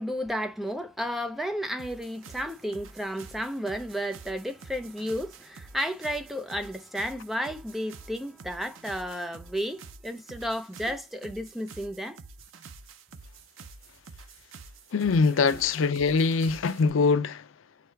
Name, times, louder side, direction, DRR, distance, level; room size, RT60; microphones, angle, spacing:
voice 1, 0.0-12.2, equal, ahead, 0.6 m, -32 dB
sound 1, 1.8-16.9, right 4 dB, 85° right, 0.7 m, -48 dB
voice 2, 14.9-17.5, left 4 dB, 85° left, 0.5 m, -23 dB
4.8 x 2.3 x 4.5 m
head